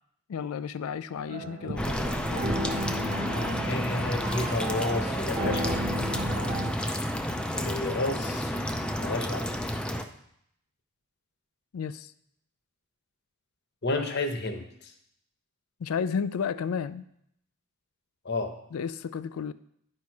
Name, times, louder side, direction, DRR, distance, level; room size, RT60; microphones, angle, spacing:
voice 1, 0.3-2.9 11.7-12.1 15.8-17.0 18.7-19.5, left 6 dB, 80° left, 15 dB, 0.4 m, -33 dB
sound 1, 1.3-6.7, right 1 dB, 35° right, 0.7 m, -35 dB
voice 2, 1.6-2.0 3.6-5.8 7.5-8.5 9.0-9.5 13.8-14.9 18.2-18.5, left 2 dB, 50° left, 6 dB, 0.9 m, -31 dB
sound 2, 1.7-6.5, right 2 dB, 75° right, 0.7 m, -45 dB
sound 3, 1.8-10.0, equal, 5° left, 0.4 m, -30 dB
10.5 x 4.5 x 4.7 m, 0.73 s
head